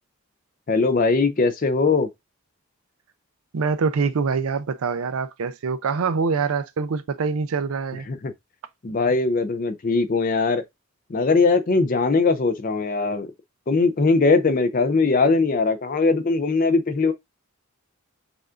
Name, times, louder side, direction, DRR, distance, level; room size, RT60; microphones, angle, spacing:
voice 1, 0.7-2.1 8.1-8.3 8.8-10.6 11.1-13.3 13.7-17.1, left 3 dB, 40° left, 0.4 m, -20 dB
voice 2, 3.5-8.1, right 5 dB, 75° right, 0.5 m, -24 dB
6.8 x 2.4 x 2.5 m
head